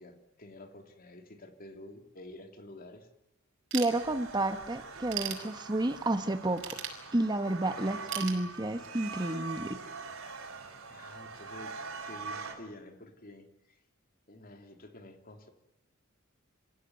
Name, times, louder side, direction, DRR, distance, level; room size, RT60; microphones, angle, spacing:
voice 1, 0.0-3.1 10.9-13.8 14.3-15.5, left 1 dB, 45° left, 6 dB, 3.0 m, -50 dB
voice 2, 3.7-6.6 7.1-9.8, right 2 dB, 20° right, 9 dB, 1.1 m, -31 dB
Ratchet pawl / Tools, 3.7-4.5 4.9-6.0 6.6-7.5 8.1-9.1, right 10 dB, 65° right, 5.0 m, -38 dB
sound 1, 3.9-12.5, right 4 dB, 85° right, 3.3 m, -43 dB
27.0 x 15.5 x 9.4 m, 0.86 s
head